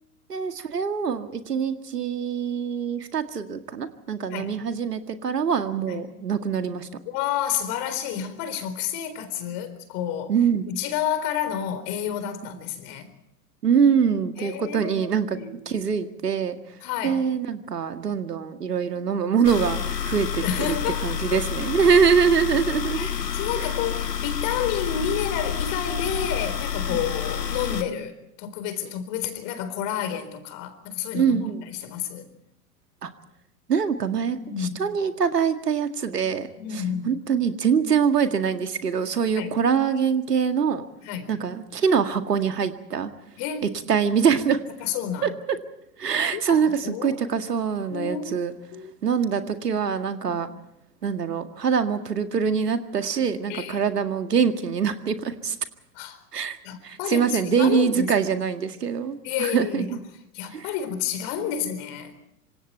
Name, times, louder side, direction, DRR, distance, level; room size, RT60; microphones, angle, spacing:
voice 1, 0.3-6.9 10.3-10.7 13.6-15.4 15.7-16.6 17.0-20.8 21.0-23.1 23.6-23.7 26.9-27.0 31.1-31.6 33.0-33.1 33.7-36.5 37.1-40.8 41.3-43.1 43.6-44.6 45.2-45.3 46.0-48.5 49.0-50.5 51.0-55.6 56.3-56.6 56.8-59.9 60.5-60.6, right 7 dB, 80° right, 8 dB, 2.0 m, -24 dB
voice 2, 7.1-10.3 10.7-13.1 14.4-15.1 15.4-15.8 16.8-17.2 20.4-21.5 22.9-32.3 34.4-34.8 36.6-37.2 39.3-39.6 41.0-41.3 43.4-43.7 44.8-45.3 46.3-47.2 47.9-48.9 50.3-50.4 53.5-53.8 55.9-56.2 56.6-58.1 59.2-60.0 60.3-62.1, left 9 dB, 45° left, 11 dB, 4.1 m, -30 dB
sound 1, 19.4-27.8, left 8 dB, 85° left, 1.7 m, -29 dB
26.5 x 26.0 x 4.5 m, 0.80 s
figure-of-eight pair, 100°, 47 cm